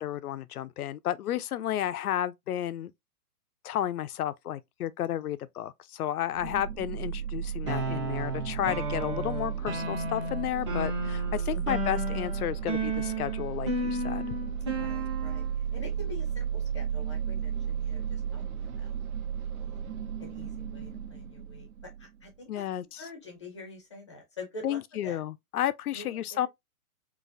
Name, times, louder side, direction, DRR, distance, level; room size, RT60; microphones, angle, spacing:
voice 1, 0.0-2.9 3.6-14.3 22.5-23.0 24.6-26.5, left 11 dB, 70° left, 0.6 m, -32 dB
sound 1, 6.3-22.3, right 8 dB, 65° right, 1.0 m, -34 dB
sound 2, 7.7-15.5, right 1 dB, 20° right, 0.7 m, -34 dB
voice 2, 14.7-15.4 15.7-19.0 19.5-19.9 20.2-21.7 22.0-22.6 23.0-25.2 25.9-26.5, left 2 dB, 20° left, 0.6 m, -46 dB
3.9 x 2.6 x 2.5 m
hypercardioid pair, 175°, 46 cm